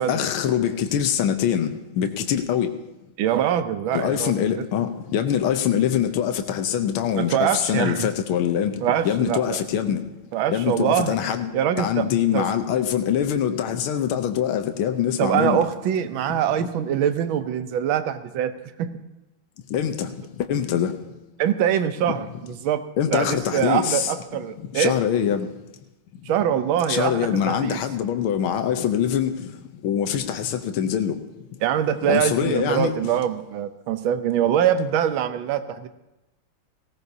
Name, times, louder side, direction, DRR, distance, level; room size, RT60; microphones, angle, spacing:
voice 1, 0.1-2.7 3.9-10.0 10.5-15.6 19.7-20.1 20.4-20.9 23.0-24.1 24.6-25.5 26.9-29.5 29.8-31.2 32.1-32.9, left 9 dB, 85° left, 1.7 m, -24 dB
voice 2, 3.2-4.6 7.2-8.1 8.8-9.6 10.3-11.2 11.5-12.1 12.3-12.4 15.2-18.9 21.4-22.8 23.1-24.9 26.3-27.8 31.6-35.9, right 10 dB, 75° right, 1.5 m, -24 dB
18.5 x 17.0 x 2.7 m
omnidirectional pair, 2.3 m